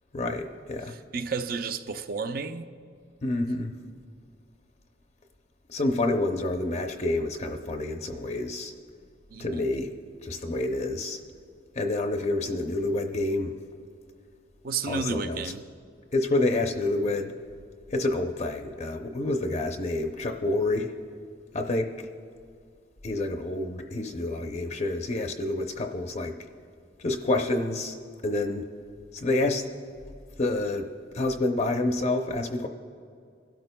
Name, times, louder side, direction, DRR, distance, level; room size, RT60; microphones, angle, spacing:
voice 1, 0.1-1.0 3.2-3.7 5.7-8.7 9.4-9.9 10.2-11.2 11.8-13.5 14.8-15.5 16.1-17.3 17.9-20.9 21.5-21.9 23.0-26.4 27.0-27.9 28.2-28.7 29.1-29.6 30.4-32.7, left 2 dB, 40° left, 0.6 m, -28 dB
voice 2, 0.9-2.7 9.3-9.7 14.6-15.6, right 5 dB, 50° right, 0.5 m, -32 dB
22.0 x 12.5 x 2.2 m
head